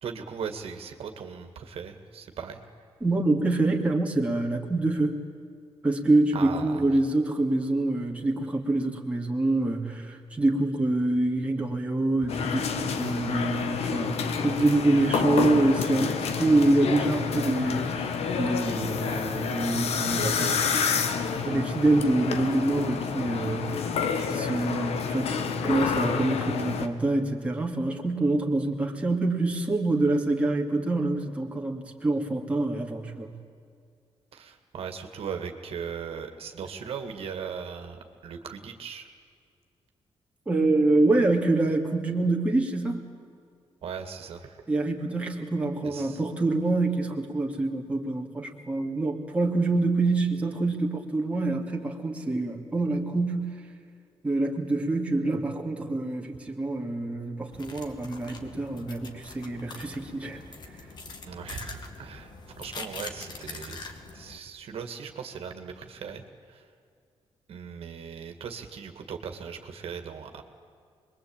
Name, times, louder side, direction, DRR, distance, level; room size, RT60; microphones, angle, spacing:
voice 1, 0.0-2.6 6.3-7.0 34.3-39.1 43.8-44.6 45.8-46.2 61.3-63.9 64.1-66.7 67.5-70.4, right 6 dB, 65° right, 6 dB, 2.2 m, -38 dB
voice 2, 3.0-5.2 5.8-20.6 21.5-23.7 24.2-33.3 40.5-43.1 44.7-53.6 54.2-60.4, right 2 dB, 10° right, 0 dB, 2.5 m, -26 dB
sound 1, 12.3-26.9, left 6 dB, 80° left, 1.8 m, -29 dB
sound 2, 57.5-64.4, left 3 dB, 45° left, 2.3 m, -43 dB
26.5 x 22.0 x 8.9 m, 2.3 s
wide cardioid pair, 170°, 11 cm